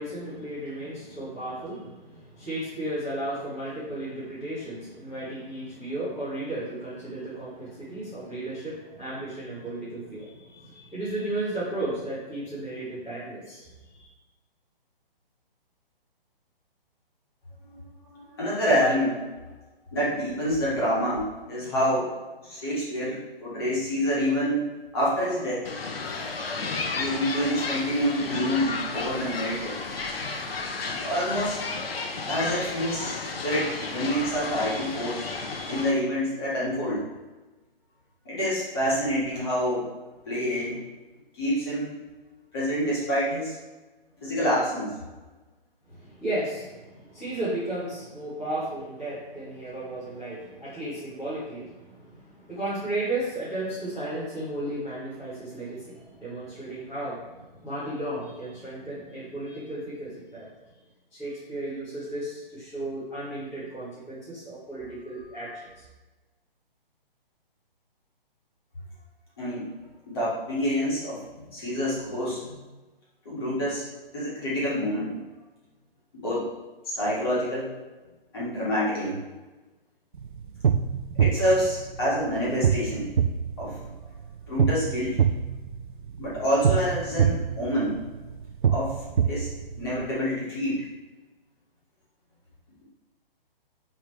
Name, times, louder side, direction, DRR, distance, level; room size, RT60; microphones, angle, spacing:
voice 1, 0.0-14.1 45.9-60.5 61.1-65.8, right 1 dB, 5° left, -17 dB, 1.2 m, -34 dB
voice 2, 18.1-19.2 19.9-22.1 22.4-25.6 26.9-29.8 31.0-31.6 32.3-35.2 35.7-37.0 38.3-39.8 40.3-40.8 41.3-41.9 42.5-43.5 44.2-44.9 69.4-69.7 70.1-72.6 73.3-73.8 74.1-75.2 76.1-76.5 76.8-77.7 78.3-79.2 81.2-83.1 83.6-83.8 84.5-85.2 86.2-88.0 88.7-88.9 89.2-89.5 89.8-90.9, equal, 25° left, -9 dB, 2.0 m, -27 dB
sound 1, 25.6-35.9, left 3 dB, 80° left, 1.0 m, -33 dB
sound 2, 80.1-90.1, right 7 dB, 55° right, 0.4 m, -26 dB
8.7 x 3.6 x 3.3 m, 1.2 s
hypercardioid pair, 175°, 29 cm